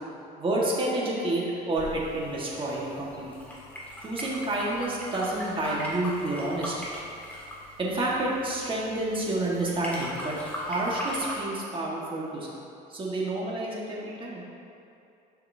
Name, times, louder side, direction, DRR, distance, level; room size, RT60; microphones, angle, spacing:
voice 1, 0.4-3.3 4.0-6.9 7.8-12.6 12.9-14.4, right 1 dB, 30° right, -4 dB, 1.6 m, -29 dB
sound 1, 1.8-11.4, equal, 10° left, 1.7 m, -39 dB
11.0 x 5.7 x 2.8 m, 2.6 s
cardioid pair, 110°, 17 cm